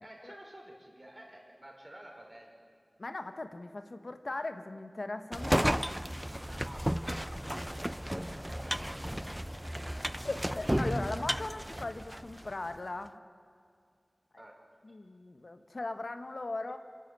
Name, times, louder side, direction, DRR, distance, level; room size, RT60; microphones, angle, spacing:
voice 1, 0.0-2.5 6.6-10.2 14.4-14.6, right 1 dB, 30° right, 0 dB, 4.9 m, -52 dB
voice 2, 3.0-5.7 10.2-13.2 14.8-16.8, left 2 dB, 70° left, 8 dB, 1.1 m, -38 dB
sound 1, 5.3-12.5, equal, 5° right, 0.4 m, -33 dB
26.5 x 11.5 x 9.5 m, 2.4 s
wide cardioid pair, 60°, 0 cm